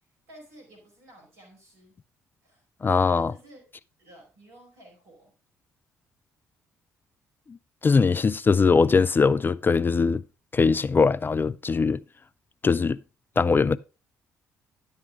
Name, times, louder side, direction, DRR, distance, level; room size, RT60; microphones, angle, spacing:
voice 1, 0.3-2.0 2.4-3.6 4.0-5.3, right 1 dB, 70° right, 4.6 m, -52 dB
voice 2, 2.8-3.3 7.8-10.2 10.5-12.0 12.6-13.0 13.4-13.8, left 4 dB, 25° left, 0.4 m, -21 dB
11.0 x 7.9 x 3.6 m
figure-of-eight pair, 45°, 8 cm